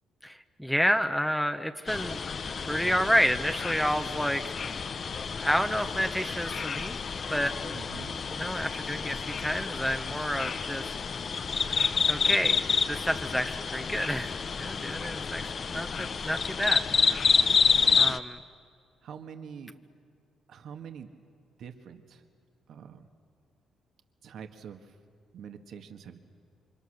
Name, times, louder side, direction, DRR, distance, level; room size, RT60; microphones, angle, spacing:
voice 1, 0.2-2.2 2.6-5.0 5.4-7.0 7.3-7.8 8.3-10.9 12.1-12.6 12.9-17.2 18.0-18.4, equal, ahead, 8 dB, 0.9 m, -30 dB
sound 1, 1.9-18.2, left 5 dB, 45° left, 0.8 m, -29 dB
voice 2, 7.7-8.2 17.8-18.1 19.0-19.7 20.5-21.1 21.6-22.2 22.7-23.1 24.2-24.9 25.3-26.2, right 7 dB, 70° right, 6 dB, 1.7 m, -45 dB
28.5 x 24.5 x 6.6 m, 2.3 s
cardioid pair, 90°, 0 cm